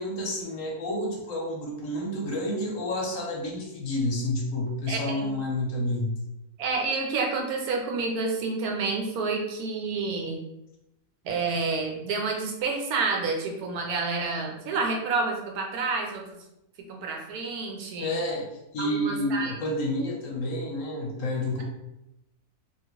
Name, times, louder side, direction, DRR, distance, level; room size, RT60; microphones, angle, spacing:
voice 1, 0.0-6.1 18.0-18.5 18.7-21.6, left 1 dB, 65° left, -1 dB, 0.9 m, -29 dB
voice 2, 4.9-5.3 6.6-10.4 11.2-16.4 16.9-18.1 18.8-19.5 20.0-20.1, right 4 dB, 75° right, 1 dB, 1.1 m, -29 dB
2.8 x 2.5 x 2.9 m, 0.88 s
omnidirectional pair, 1.6 m